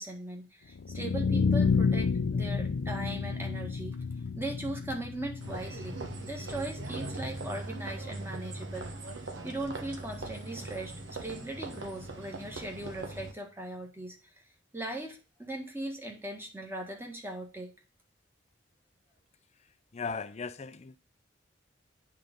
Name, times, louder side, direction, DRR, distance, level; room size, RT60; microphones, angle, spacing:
voice 1, 0.0-4.0 4.4-8.9 9.4-14.2 14.7-17.7, right 1 dB, 15° right, 1.7 m, -39 dB
sound 1, 0.7-6.8, left 5 dB, 85° left, 0.5 m, -30 dB
sound 2, 5.4-13.3, right 2 dB, 75° right, 1.3 m, -40 dB
voice 2, 19.9-21.0, left 5 dB, 35° left, 0.5 m, -37 dB
8.7 x 3.8 x 5.3 m
head